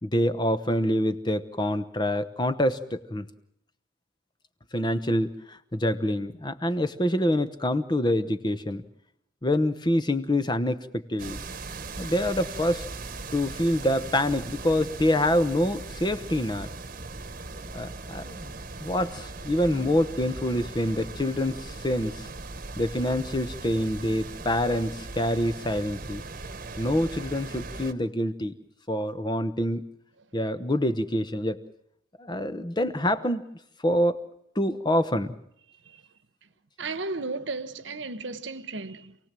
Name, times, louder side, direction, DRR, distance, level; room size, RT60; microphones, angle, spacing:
voice 1, 0.0-3.3 4.7-8.8 9.4-10.8 11.1-11.4 12.0-12.9 13.3-16.7 17.7-18.5 18.8-22.3 22.8-26.2 26.8-28.5 28.9-29.8 30.3-31.6 32.2-33.4 33.8-34.3 34.5-35.3, left 1 dB, 20° left, 1.0 m, -26 dB
sound 1, 11.2-27.9, right 3 dB, 45° right, 1.3 m, -39 dB
voice 2, 35.7-36.0 36.8-39.2, right 3 dB, 70° right, 1.2 m, -34 dB
27.5 x 18.0 x 7.6 m
head